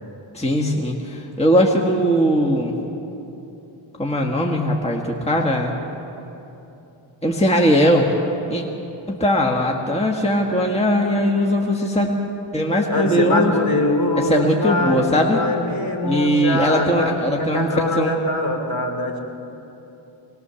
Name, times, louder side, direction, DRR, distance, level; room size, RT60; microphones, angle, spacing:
voice 1, 0.3-2.7 4.0-5.7 7.2-8.1 8.5-8.6 9.1-12.1 12.5-13.5 14.2-15.4 16.0-17.7 18.0-18.1, equal, 15° left, 0 dB, 1.7 m, -19 dB
voice 2, 12.9-19.2, left 2 dB, 45° left, 3 dB, 2.9 m, -23 dB
24.5 x 19.5 x 7.0 m, 3.0 s
wide cardioid pair, 105°, 48 cm